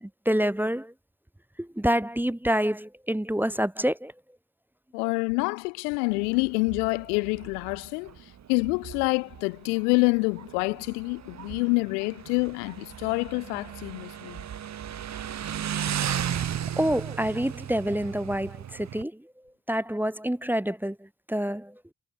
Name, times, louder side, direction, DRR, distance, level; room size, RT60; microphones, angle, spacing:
voice 1, 0.0-0.9 1.6-4.1 16.8-19.3 19.7-21.8, equal, 5° right, 0.9 m, -27 dB
voice 2, 4.9-8.1 8.5-14.4, left 31 dB, 90° left, 0.7 m, -27 dB
Motorcycle, 6.1-19.0, right 9 dB, 40° right, 0.8 m, -36 dB
hypercardioid pair, 50°, 44 cm